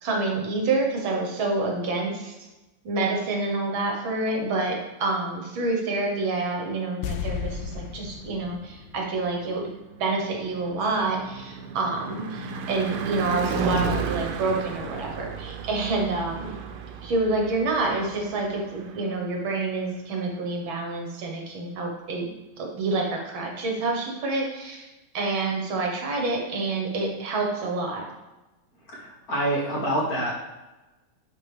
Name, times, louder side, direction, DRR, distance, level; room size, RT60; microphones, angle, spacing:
voice 1, 0.0-2.3 2.9-9.6 10.0-16.6 17.0-22.3 22.6-24.9 25.1-28.0, right 3 dB, 70° right, 1 dB, 2.0 m, -28 dB
sound 1, 7.0-10.2 10.5-10.6, left 7 dB, 80° left, 1.4 m, -35 dB
Car passing by / Truck / Engine, 9.5-19.7, right 5 dB, 90° right, 1.6 m, -33 dB
voice 2, 28.9-30.3, right 1 dB, 45° left, -5 dB, 2.1 m, -26 dB
11.0 x 4.8 x 3.4 m, 1.1 s
omnidirectional pair, 2.3 m